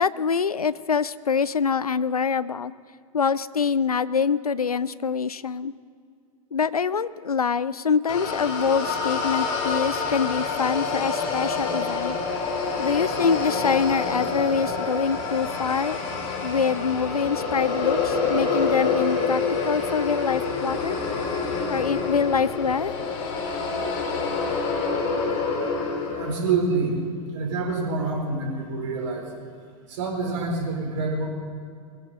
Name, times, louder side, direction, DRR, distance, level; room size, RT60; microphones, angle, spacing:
voice 1, 0.0-2.7 3.1-5.7 6.5-12.2 12.8-16.0 16.4-21.0 21.7-22.9, left 6 dB, 85° left, 17 dB, 0.5 m, -25 dB
sound 1, 8.1-26.3, left 4 dB, 50° left, 2.9 m, -27 dB
voice 2, 26.1-27.1 27.3-29.3 29.9-31.3, right 3 dB, 55° right, 1 dB, 4.1 m, -26 dB
22.5 x 16.0 x 4.1 m, 2.2 s
figure-of-eight pair, 95°, 19 cm